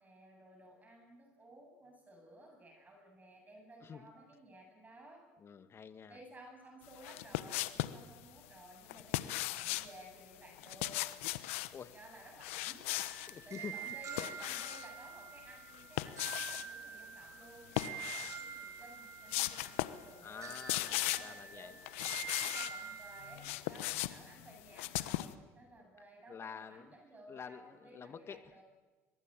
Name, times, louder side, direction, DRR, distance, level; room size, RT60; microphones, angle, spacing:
voice 1, 0.0-5.2 6.1-11.0 11.9-21.8 22.4-28.6, right 1 dB, 25° right, 2 dB, 7.9 m, -56 dB
voice 2, 5.4-6.2 11.7-11.9 13.3-14.3 20.2-21.7 26.3-26.9 27.3-28.6, left 6 dB, 35° left, 11 dB, 1.9 m, -48 dB
sound 1, 7.0-8.0 8.9-9.9 10.6-11.7 12.4-13.3 13.8-14.9 15.7-16.7 17.7-18.4 18.8-18.9 19.3-20.1 20.3-21.4 21.9-22.8 23.2-25.3, left 17 dB, 85° left, 1.0 m, -38 dB
sound 2, 12.9-23.4, right 8 dB, 50° right, 6.8 m, -47 dB
23.0 x 22.0 x 9.1 m, 1.3 s
supercardioid pair, 85°, 7 cm